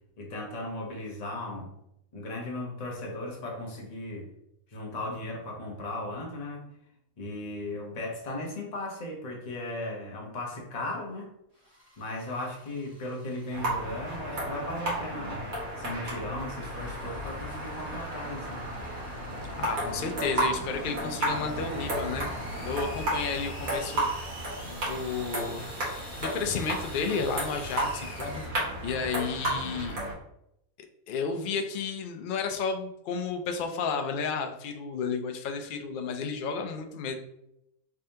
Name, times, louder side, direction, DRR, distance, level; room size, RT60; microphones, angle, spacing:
voice 1, 0.2-1.7 2.1-4.3 4.7-6.6 7.2-11.3 12.0-15.5 15.8-18.6, left 1 dB, 35° left, -1 dB, 0.8 m, -36 dB
sound 1, 11.6-14.0 16.6-28.5, equal, 60° right, 2.0 m, -48 dB
sound 2, 13.5-30.1, right 1 dB, 75° right, 1.8 m, -33 dB
voice 2, 19.6-22.3 22.6-24.1 24.7-25.6 26.2-30.0 31.1-37.1, left 5 dB, 80° left, 5 dB, 0.4 m, -32 dB
3.5 x 3.3 x 2.8 m, 0.81 s
omnidirectional pair, 1.5 m